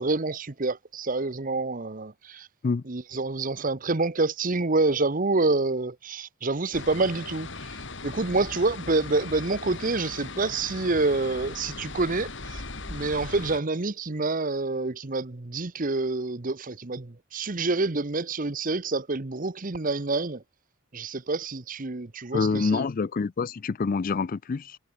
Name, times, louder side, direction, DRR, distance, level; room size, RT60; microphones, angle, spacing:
voice 1, 0.0-2.5 2.9-7.7 8.0-12.6 12.9-20.4 20.9-22.9, right 3 dB, 40° right, 1.0 m, -27 dB
sound 1, 6.7-13.6, left 3 dB, 60° left, 3.3 m, -39 dB
voice 2, 22.3-24.8, left 4 dB, 40° left, 0.4 m, -26 dB
head